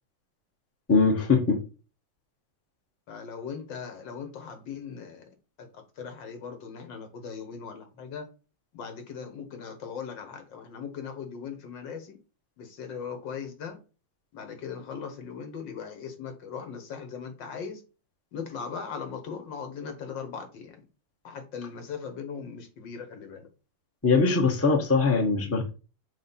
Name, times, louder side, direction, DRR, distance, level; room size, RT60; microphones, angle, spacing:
voice 1, 0.9-1.6 24.0-25.7, left 4 dB, 10° left, 0.9 m, -22 dB
voice 2, 3.1-5.3 5.6-8.3 8.7-12.2 12.6-13.8 14.3-17.8 18.3-20.8 21.2-23.5, left 6 dB, 75° left, 1.9 m, -39 dB
7.2 x 2.4 x 5.6 m
omnidirectional pair, 2.0 m